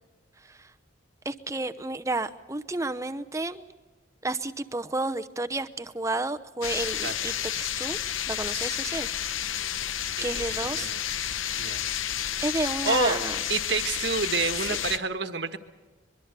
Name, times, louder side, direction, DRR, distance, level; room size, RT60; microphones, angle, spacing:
voice 1, 1.2-3.7 4.2-8.0 8.3-9.1 10.2-10.9 11.5-11.6 12.4-13.3, right 2 dB, 15° right, 9 dB, 0.8 m, -31 dB
sound 1, 6.6-15.0, left 10 dB, 85° left, 0.8 m, -31 dB
voice 2, 10.2-11.0 11.6-11.8 12.8-13.2 13.5-15.6, right 4 dB, 60° right, 8 dB, 1.5 m, -28 dB
23.5 x 23.0 x 6.8 m, 1.3 s
head